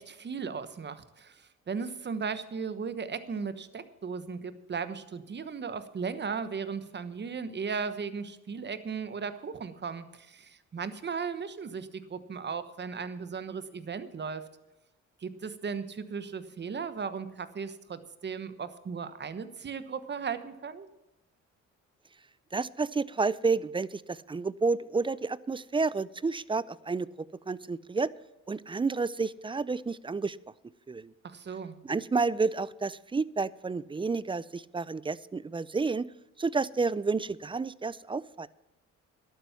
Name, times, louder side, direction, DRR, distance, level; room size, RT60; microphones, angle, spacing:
voice 1, 0.0-14.4 15.2-20.9 31.2-31.8, right 5 dB, 35° right, 12 dB, 1.2 m, -36 dB
voice 2, 22.5-27.1 27.5-28.1 28.5-30.4 30.9-31.1 31.8-36.1 36.4-38.5, right 4 dB, 15° right, 20 dB, 0.4 m, -30 dB
11.5 x 9.1 x 7.1 m, 0.99 s
cardioid pair, 90°, 30 cm